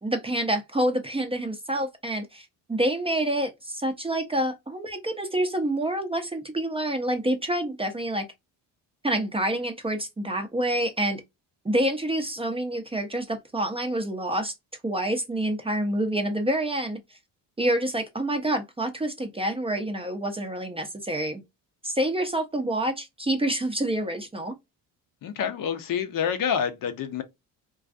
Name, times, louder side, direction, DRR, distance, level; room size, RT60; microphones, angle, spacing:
voice 1, 0.0-8.3 9.0-11.2 11.6-14.5 14.8-17.0 17.6-21.4 21.8-24.5, right 1 dB, 15° right, 0.5 m, -27 dB
voice 2, 25.2-27.2, left 8 dB, 55° left, 0.6 m, -27 dB
2.4 x 2.3 x 2.4 m
supercardioid pair, 75°, 41 cm